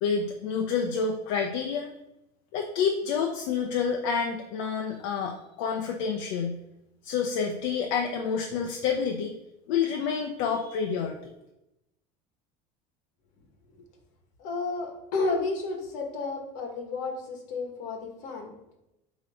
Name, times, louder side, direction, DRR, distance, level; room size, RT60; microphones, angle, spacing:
voice 1, 0.0-1.9 2.5-6.6 7.0-9.3 9.7-11.2, left 6 dB, 65° left, 3 dB, 0.7 m, -28 dB
voice 2, 14.4-18.5, left 3 dB, 50° left, 3 dB, 1.5 m, -32 dB
8.1 x 3.0 x 4.9 m, 0.88 s
cardioid pair, 170°, 17 cm